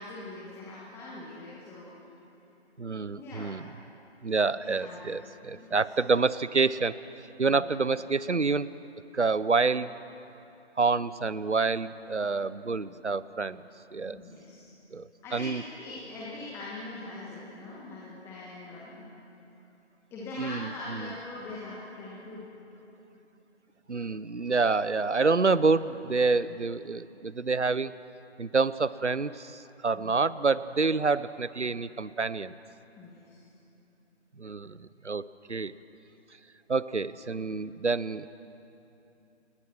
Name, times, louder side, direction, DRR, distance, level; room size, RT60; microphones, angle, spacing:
voice 1, 0.0-1.9 2.8-2.9 3.1-3.5 4.5-5.8 7.5-7.8 12.7-13.0 14.1-14.7 15.2-19.1 20.1-22.5 23.9-24.0 29.9-30.2 33.0-33.4, left 2 dB, 5° left, -5 dB, 1.5 m, -42 dB
voice 2, 2.8-3.6 4.2-7.0 7.4-8.7 9.1-9.9 10.8-13.6 13.9-14.2 14.9-15.6 20.4-21.1 23.9-27.9 28.4-32.5 34.4-35.7 36.7-38.3, right 4 dB, 90° right, 17 dB, 0.8 m, -27 dB
29.5 x 18.5 x 6.2 m, 2.9 s
figure-of-eight pair, 145°, 34 cm